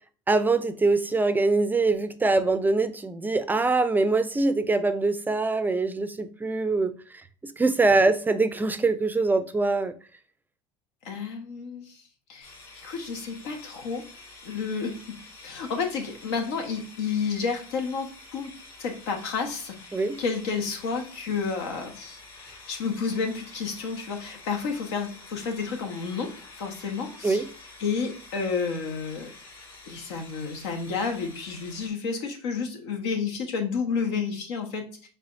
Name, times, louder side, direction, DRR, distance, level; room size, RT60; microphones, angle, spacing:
voice 1, 0.3-6.9 7.4-9.9 19.9-20.2 27.2-27.4, right 3 dB, 15° right, 0.4 m, -23 dB
voice 2, 11.0-12.0 12.3-12.5 12.8-14.1 14.4-15.2 15.4-18.5 18.8-19.9 20.2-26.3 26.6-27.4 27.8-29.3 29.9-35.1, left 5 dB, 85° left, 1.1 m, -31 dB
sound 1, 12.4-31.9, left 3 dB, 40° left, 2.3 m, -48 dB
4.8 x 3.7 x 2.5 m
supercardioid pair, 105°, 14 cm